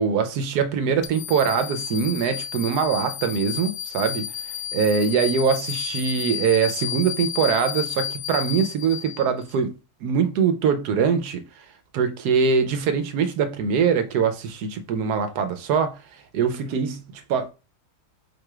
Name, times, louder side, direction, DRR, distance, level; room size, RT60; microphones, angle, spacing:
voice 1, 0.0-11.4 11.9-17.0 17.3-17.5, right 6 dB, 85° right, 1.2 m, -23 dB
sound 1, 1.0-9.5, left 9 dB, 70° left, 1.0 m, -32 dB
4.4 x 2.3 x 4.8 m
omnidirectional pair, 1.7 m